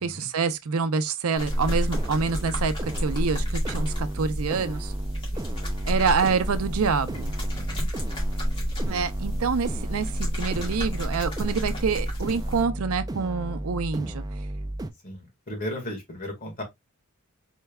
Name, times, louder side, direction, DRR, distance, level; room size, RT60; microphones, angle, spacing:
voice 1, 0.0-4.9 5.9-7.3 8.9-10.1 10.4-14.2, right 5 dB, 80° right, 0.5 m, -26 dB
sound 1, 1.4-12.6, equal, 25° left, 1.8 m, -30 dB
sound 2, 1.5-14.9, right 1 dB, 20° right, 0.4 m, -34 dB
voice 2, 7.5-7.9 15.0-16.6, left 1 dB, 40° left, 1.7 m, -36 dB
4.5 x 3.3 x 2.3 m
head